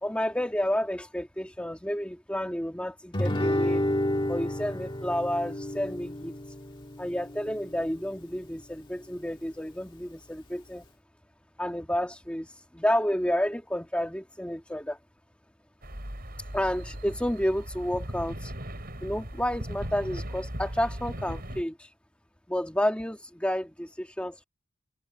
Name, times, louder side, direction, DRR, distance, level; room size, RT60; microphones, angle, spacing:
voice 1, 0.0-3.8 4.3-6.6 7.0-10.8 11.6-15.0 16.5-18.5 19.0-21.9 22.5-24.4, equal, 5° left, 1.9 m, -30 dB
Guitar, 3.1-8.2, left 1 dB, 25° left, 1.9 m, -31 dB
sound 1, 15.8-21.6, equal, 45° right, 6.6 m, -38 dB
head